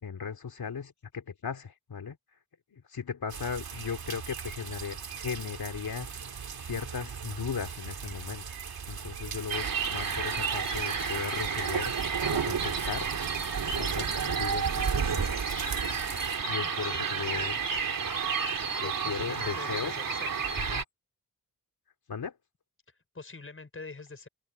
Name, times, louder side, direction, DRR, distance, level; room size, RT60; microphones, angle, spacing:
voice 1, 0.0-2.2 2.7-6.1 6.6-8.4 8.9-13.1 13.7-15.3 15.5-16.0 16.5-17.6 18.8-19.9 20.7-20.8 22.1-22.3, left 6 dB, 85° left, 3.0 m, -37 dB
sound 1, 3.3-16.4, right 6 dB, 85° right, 2.8 m, -37 dB
sound 2, 9.5-20.8, right 6 dB, 65° right, 3.9 m, -31 dB
voice 2, 16.6-17.5 18.8-20.6 23.1-24.3, left 3 dB, 35° left, 6.2 m, -45 dB
open air
wide cardioid pair, 150°, 36 cm